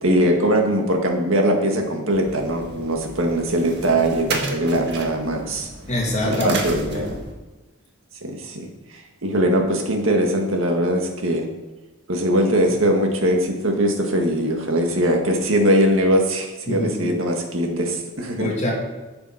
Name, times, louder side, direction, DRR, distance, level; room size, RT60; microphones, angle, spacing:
voice 1, 0.0-5.7 6.3-7.2 8.2-8.7 8.9-11.5 12.1-18.5, right 1 dB, 75° right, 3 dB, 1.8 m, -21 dB
sound 1, 2.1-7.3, right 3 dB, 55° right, 1.6 m, -33 dB
voice 2, 5.9-7.0 16.7-17.2 18.4-18.7, left 1 dB, 35° left, -2 dB, 2.7 m, -25 dB
12.0 x 7.1 x 5.0 m, 1.2 s
head